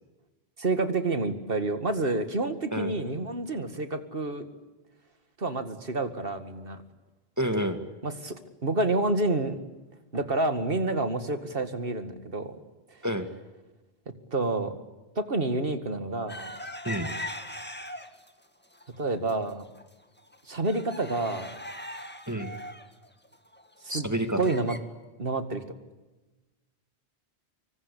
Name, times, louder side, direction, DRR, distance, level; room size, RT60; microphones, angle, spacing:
voice 1, 0.6-4.4 5.4-6.8 8.0-8.4 8.6-9.6 10.1-12.6 14.3-14.7 15.2-16.5 19.0-19.6 20.5-21.5 23.8-24.1 24.4-24.8 25.2-25.6, right 2 dB, 60° right, 9 dB, 2.3 m, -28 dB
voice 2, 7.4-7.8 13.0-13.3 16.8-17.1 22.3-22.6 23.9-24.4, right 1 dB, 15° right, 8 dB, 2.2 m, -29 dB
sound 1, 16.3-18.3 18.7-19.3 19.8-19.9 20.2-24.8, left 1 dB, 10° left, 2.0 m, -40 dB
26.0 x 24.0 x 8.5 m, 1.2 s
omnidirectional pair, 1.1 m